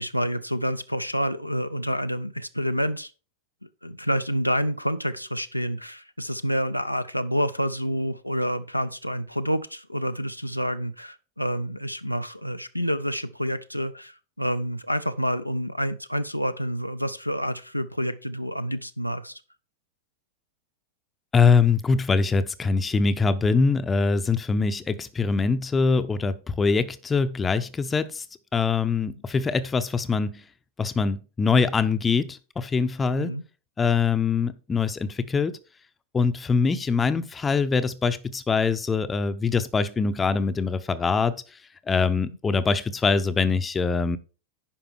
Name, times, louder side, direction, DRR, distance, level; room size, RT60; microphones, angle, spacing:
voice 1, 0.0-3.1 3.6-19.4 33.1-33.4, equal, 90° left, 0.4 m, -28 dB
voice 2, 21.3-28.2 28.5-30.4 30.8-33.3 33.8-35.6 36.1-41.4 41.9-44.2, left 4 dB, 15° left, 0.7 m, -23 dB
10.0 x 5.3 x 4.4 m
figure-of-eight pair, 90°, 0 cm